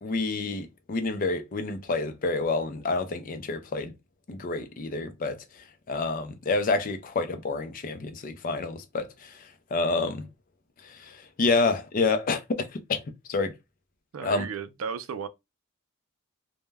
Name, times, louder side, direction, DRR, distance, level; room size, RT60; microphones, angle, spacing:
voice 1, 0.0-3.9 4.3-10.3 10.8-13.0 13.3-13.6 14.2-14.5, left 3 dB, 40° left, 0.4 m, -28 dB
voice 2, 14.1-15.3, right 6 dB, 75° right, 0.4 m, -34 dB
2.2 x 2.1 x 3.3 m
head